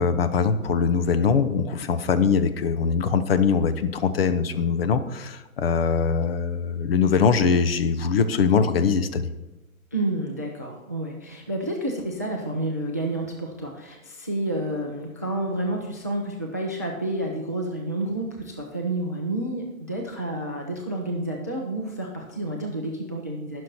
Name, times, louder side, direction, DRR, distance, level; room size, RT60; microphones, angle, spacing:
voice 1, 0.0-9.3, left 6 dB, 45° left, 11 dB, 0.9 m, -22 dB
voice 2, 9.9-23.6, right 1 dB, 15° right, 1 dB, 0.4 m, -30 dB
19.0 x 6.4 x 4.3 m, 1.1 s
figure-of-eight pair, 135°, 43 cm